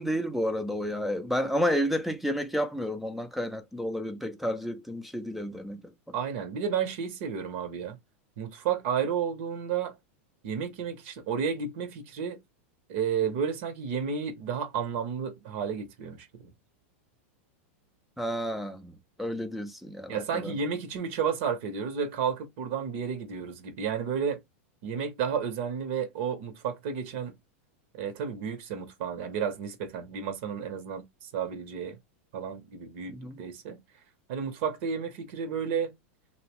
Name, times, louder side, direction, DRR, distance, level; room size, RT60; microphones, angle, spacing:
voice 1, 0.0-5.8 18.2-20.5 33.1-33.4, equal, ahead, 0.4 m, -31 dB
voice 2, 6.1-8.0 8.4-10.0 10.4-12.4 12.9-16.5 20.1-24.4 24.8-27.3 27.9-32.0 32.3-33.8 34.3-35.9, right 7 dB, 60° right, 0.7 m, -32 dB
2.7 x 2.0 x 2.9 m
supercardioid pair, 135°, 7 cm